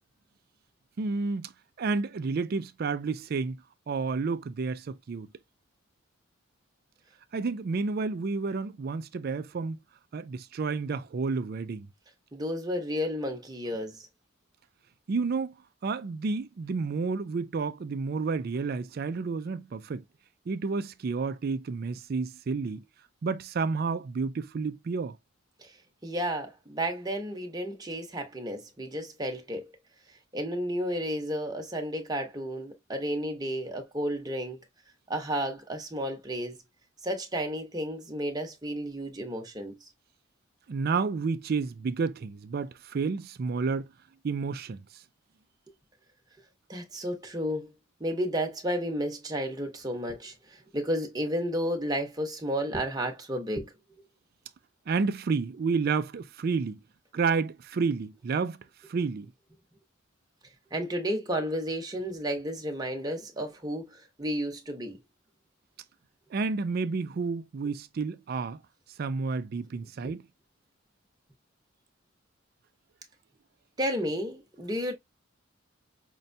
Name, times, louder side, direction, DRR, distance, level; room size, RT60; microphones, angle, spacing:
voice 1, 1.0-1.5 1.8-3.6 3.9-5.3 7.3-9.8 10.1-11.9 15.1-15.5 15.8-20.0 20.5-22.8 23.2-25.2 40.7-43.9 44.2-44.8 54.9-56.8 57.1-58.6 58.9-59.3 66.3-68.6 69.0-70.2, right 4 dB, 50° right, 0.4 m, -30 dB
voice 2, 12.3-14.1 25.6-25.7 26.0-29.7 30.3-34.6 35.1-36.6 37.0-39.9 46.7-47.7 48.0-53.7 60.7-65.0 70.0-70.1 73.8-74.9, equal, 20° right, 0.9 m, -32 dB
5.4 x 2.2 x 2.6 m
head